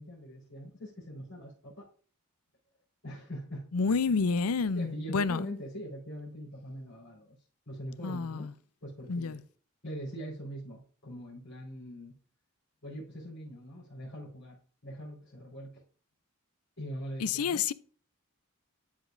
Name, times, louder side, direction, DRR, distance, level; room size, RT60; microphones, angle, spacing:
voice 1, 0.0-1.9 3.0-3.9 4.7-7.4 7.7-8.5 8.8-9.4 9.8-12.1 12.8-14.6 14.8-15.8 16.8-17.6, equal, 60° left, 4.4 m, -42 dB
voice 2, 3.7-5.5 8.0-8.5 9.1-9.4 17.2-17.7, left 5 dB, 80° left, 0.5 m, -29 dB
13.5 x 5.1 x 2.6 m
head